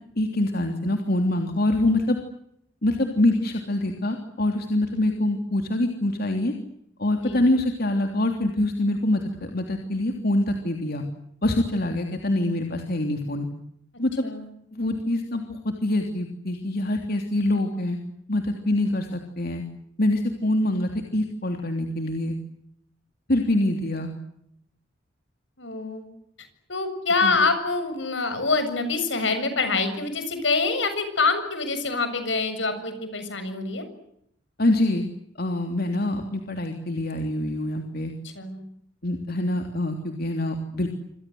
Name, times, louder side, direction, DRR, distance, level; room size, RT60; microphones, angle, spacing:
voice 1, 0.2-2.2 2.8-6.5 7.0-11.0 11.4-13.5 14.0-14.1 14.7-18.0 18.3-19.6 20.0-22.3 23.3-24.1 27.2-27.4 34.6-35.0 35.4-38.1 39.0-40.9, left 1 dB, 55° left, 4 dB, 3.2 m, -25 dB
voice 2, 25.6-26.1 26.7-33.9 38.4-38.6, left 3 dB, 75° left, 9 dB, 7.3 m, -25 dB
27.5 x 27.0 x 7.9 m, 0.75 s
head